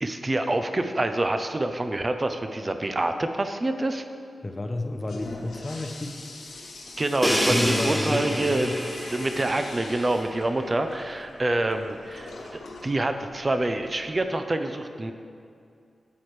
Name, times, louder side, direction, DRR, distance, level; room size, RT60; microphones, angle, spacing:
voice 1, 0.0-4.0 7.0-8.7 9.1-12.3 12.8-15.1, right 2 dB, 35° right, 7 dB, 0.5 m, -26 dB
voice 2, 4.4-6.2 7.5-8.8, left 2 dB, 30° left, 6 dB, 0.6 m, -31 dB
Toilet flush, 4.8-14.2, left 2 dB, 85° left, 1.2 m, -44 dB
Crash cymbal, 7.2-11.0, equal, 5° right, 1.0 m, -28 dB
8.6 x 8.5 x 3.2 m, 2.4 s
cardioid pair, 55°, 0 cm